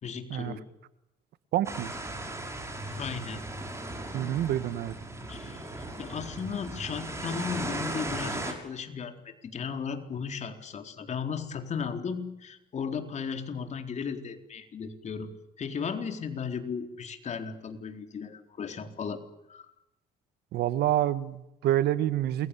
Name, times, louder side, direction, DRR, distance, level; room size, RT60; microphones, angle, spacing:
voice 1, 0.0-0.6 2.9-3.4 5.3-5.6 6.0-9.2 9.4-15.3 15.6-19.2 19.5-19.6, left 6 dB, 45° left, 6 dB, 4.2 m, -35 dB
voice 2, 1.5-1.9 4.1-5.0 20.5-22.5, right 12 dB, 75° right, 14 dB, 1.7 m, -27 dB
sound 1, 1.6-8.5, right 1 dB, 15° right, 6.8 m, -37 dB
28.5 x 22.5 x 8.5 m, 0.89 s
cardioid pair, 110°, 17 cm